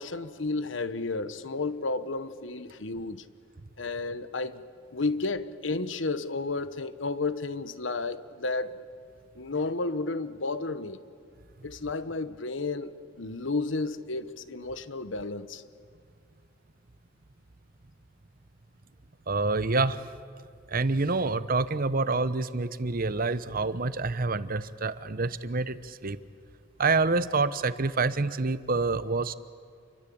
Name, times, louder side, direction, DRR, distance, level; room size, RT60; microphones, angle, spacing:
voice 1, 0.0-3.2 3.8-4.6 4.9-8.8 9.4-11.0 11.6-12.9 13.2-15.6, left 3 dB, 70° left, 13 dB, 1.1 m, -32 dB
voice 2, 19.3-20.0 20.7-26.2 26.8-29.3, right 3 dB, 50° right, 14 dB, 1.0 m, -27 dB
29.0 x 23.0 x 8.7 m, 2.3 s
head